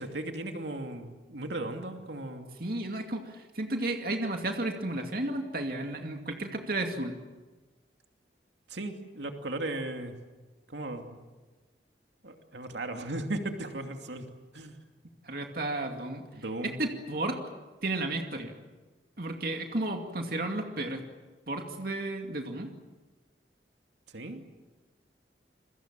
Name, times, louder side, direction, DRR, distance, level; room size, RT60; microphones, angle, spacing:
voice 1, 0.0-2.5 8.7-10.1 10.7-11.2 12.2-14.2 14.5-14.8 16.4-16.8 24.1-24.4, right 2 dB, 75° right, 4 dB, 2.7 m, -36 dB
voice 2, 2.6-7.2 15.2-16.2 16.6-17.4 17.8-18.5 19.2-21.0 21.5-22.7, right 2 dB, 55° right, 3 dB, 2.5 m, -33 dB
28.0 x 23.0 x 7.6 m, 1.3 s
head